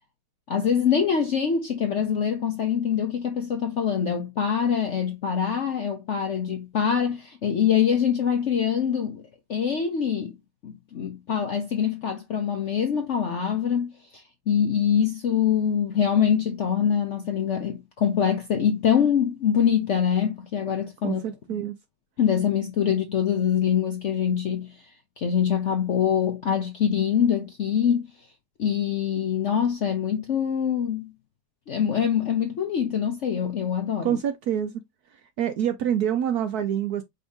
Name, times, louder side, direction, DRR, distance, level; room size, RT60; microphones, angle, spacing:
voice 1, 0.5-10.3 10.6-21.2 22.2-24.7 25.2-28.1 28.6-31.1 31.7-34.2, left 8 dB, 60° left, 0.7 m, -24 dB
voice 2, 21.0-21.8 34.0-34.8 35.4-37.0, right 9 dB, 75° right, 0.9 m, -26 dB
5.4 x 2.7 x 3.5 m
omnidirectional pair, 2.0 m